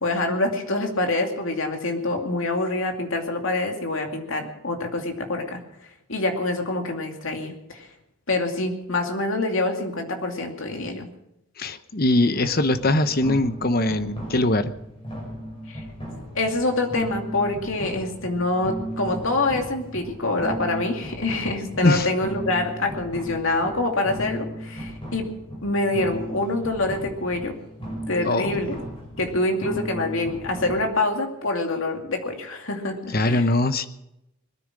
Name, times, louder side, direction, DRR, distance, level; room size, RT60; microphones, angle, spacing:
voice 1, 0.0-5.6 6.1-7.9 8.3-11.1 15.7-15.8 16.3-25.3 25.6-27.5 28.1-28.8 29.2-33.4, left 2 dB, 65° left, 3 dB, 2.5 m, -26 dB
voice 2, 11.6-14.7 21.8-22.1 28.2-28.6 33.1-33.9, left 2 dB, 45° left, 11 dB, 0.9 m, -21 dB
sound 1, 12.3-30.9, equal, 25° left, 5.7 m, -36 dB
21.0 x 10.0 x 6.3 m, 0.86 s
head